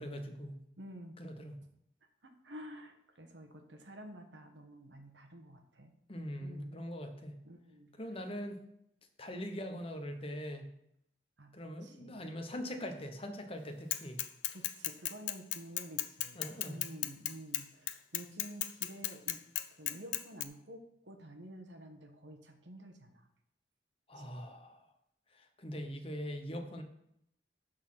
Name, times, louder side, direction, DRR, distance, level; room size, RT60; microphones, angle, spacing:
voice 1, 0.0-0.6 1.2-1.5 6.1-7.4 8.0-8.6 9.2-10.6 11.5-14.2 16.3-16.8 24.1-24.9 25.3-26.8, equal, 30° left, 5 dB, 1.1 m, -42 dB
voice 2, 0.8-1.2 2.2-5.9 6.4-6.8 7.4-8.2 11.4-12.3 14.5-19.4 19.8-23.3 24.1-24.4, right 1 dB, 85° right, 5 dB, 1.4 m, -50 dB
Bicycle / Mechanisms, 13.9-20.4, left 13 dB, 85° left, 0.6 m, -35 dB
12.5 x 4.3 x 5.8 m, 0.77 s
head